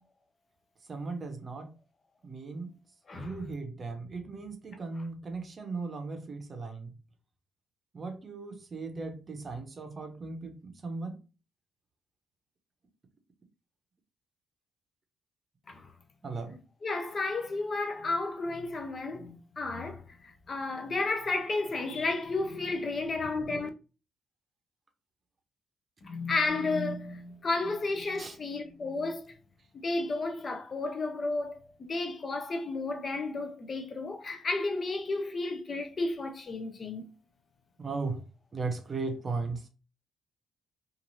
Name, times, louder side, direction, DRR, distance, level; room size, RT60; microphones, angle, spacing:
voice 1, 0.9-1.7 2.2-2.7 3.1-6.9 7.9-11.2 16.2-16.6 28.2-28.4 37.8-38.2 38.5-39.7, right 3 dB, 40° right, 0.7 m, -37 dB
voice 2, 16.8-23.7 26.0-29.3 29.8-37.1, left 3 dB, 40° left, 0.5 m, -32 dB
3.0 x 2.5 x 2.6 m
cardioid pair, 90°, 0 cm